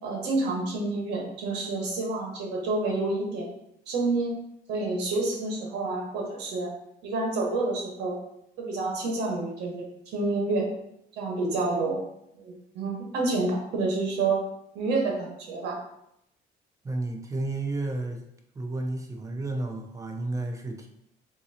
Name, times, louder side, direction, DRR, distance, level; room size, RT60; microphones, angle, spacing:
voice 1, 0.0-3.5 3.9-4.3 4.7-6.7 7.0-8.2 8.6-10.7 11.2-12.0 12.4-14.4 14.7-15.8, right 3 dB, 85° right, -1 dB, 1.3 m, -28 dB
voice 2, 16.8-18.2 18.5-20.9, right 2 dB, 20° right, 3 dB, 0.7 m, -32 dB
3.7 x 2.8 x 4.2 m, 0.78 s
cardioid pair, 110°, 17 cm